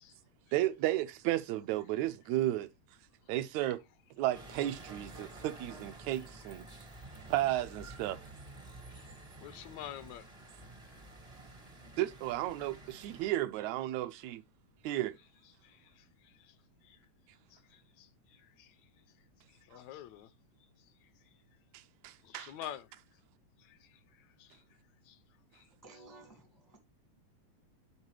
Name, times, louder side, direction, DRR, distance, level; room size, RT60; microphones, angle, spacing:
voice 1, 0.5-2.7 3.3-3.8 4.2-6.7 7.3-8.2 12.0-14.4 14.8-15.2 21.7-22.5, right 14 dB, 80° right, 1.8 m, -33 dB
sound 1, 4.3-13.3, right 2 dB, 50° right, 0.4 m, -51 dB
voice 2, 9.4-10.2 15.6-16.5 16.8-17.0 17.5-18.7 19.7-20.3 22.2-22.9 23.6-24.0 24.4-24.6 25.1-25.2 25.5-25.7, left 12 dB, 80° left, 1.8 m, -48 dB
voice 3, 25.8-26.8, right 3 dB, 25° left, 0.4 m, -55 dB
12.0 x 4.0 x 3.2 m
omnidirectional pair, 3.3 m